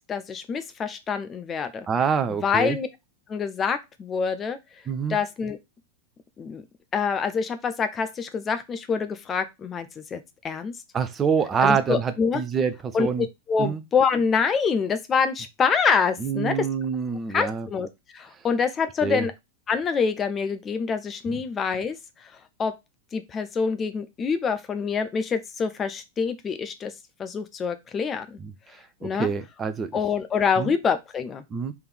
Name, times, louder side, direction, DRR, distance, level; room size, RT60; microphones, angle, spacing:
voice 1, 0.1-1.9 2.3-2.9 3.3-4.6 5.1-5.6 6.4-6.6 6.9-10.2 10.4-10.7 11.6-12.4 12.9-16.7 17.3-17.9 18.1-19.3 19.7-22.0 22.6-22.7 23.1-26.9 27.2-28.4 29.0-29.3 29.9-31.4, left 6 dB, 25° left, 0.6 m, -26 dB
voice 2, 1.9-2.8 4.9-5.2 10.9-13.3 13.6-13.8 16.2-17.7 19.0-19.3 21.3-21.4 28.4-28.5 29.0-29.9 30.6-30.7 31.5-31.7, right 6 dB, 20° right, 0.6 m, -26 dB
3.5 x 3.4 x 4.4 m
figure-of-eight pair, 90°, 0 cm